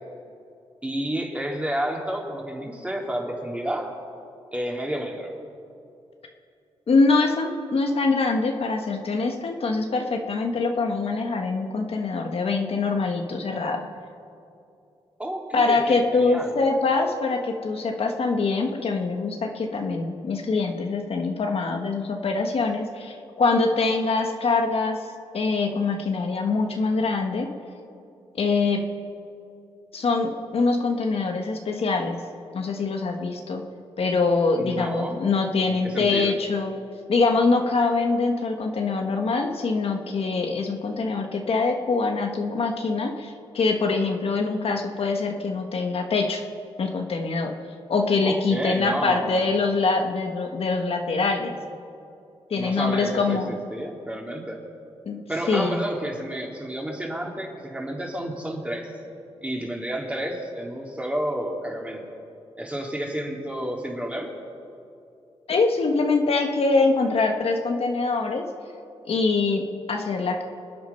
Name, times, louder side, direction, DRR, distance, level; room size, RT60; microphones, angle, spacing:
voice 1, 0.8-3.9 4.5-5.3 15.2-16.6 34.6-35.3 35.7-36.4 48.2-49.5 52.6-54.6 55.3-58.9 59.4-62.0 62.6-64.3, right 1 dB, 10° right, 0 dB, 3.1 m, -30 dB
voice 2, 6.9-13.9 15.5-25.1 25.3-27.5 28.3-28.8 29.9-32.2 32.5-33.6 34.0-36.7 37.1-46.4 46.8-47.5 47.9-51.6 52.5-53.5 55.0-55.8 65.5-68.5 69.1-70.4, left 3 dB, 65° left, 3 dB, 1.3 m, -24 dB
25.5 x 8.7 x 5.7 m, 2.6 s
cardioid pair, 65°, 11 cm